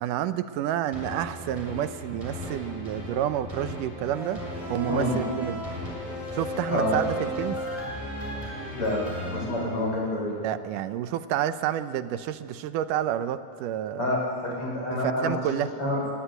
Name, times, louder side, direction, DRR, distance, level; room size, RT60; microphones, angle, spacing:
voice 1, 0.0-4.4 4.7-5.6 6.3-7.6 10.4-14.1 14.9-15.7, right 11 dB, 85° right, 12 dB, 2.4 m, -29 dB
sound 1, 0.9-10.3 10.8-10.9, equal, 10° right, 6.8 m, -35 dB
voice 2, 9.3-10.3 14.0-15.4 15.8-16.0, left 1 dB, 40° left, -2 dB, 7.6 m, -27 dB
24.5 x 19.5 x 9.3 m, 2.5 s
omnidirectional pair, 3.7 m